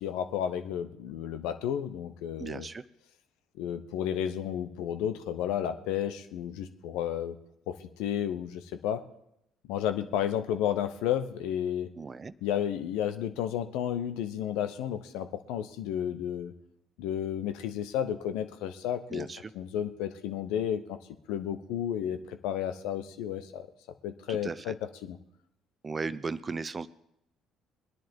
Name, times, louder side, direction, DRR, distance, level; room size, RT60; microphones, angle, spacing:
voice 1, 0.0-2.7 3.6-7.4 7.7-9.0 9.7-11.9 12.4-16.5 17.0-19.3 19.5-21.0 21.3-23.7 24.0-24.7 25.0-25.2, left 10 dB, 70° left, 10 dB, 0.9 m, -32 dB
voice 2, 2.4-2.8 11.9-12.3 19.1-19.5 24.3-24.7 25.8-26.9, right 4 dB, 30° right, 15 dB, 0.7 m, -36 dB
22.5 x 10.5 x 3.8 m, 0.78 s
hypercardioid pair, 55°, 0 cm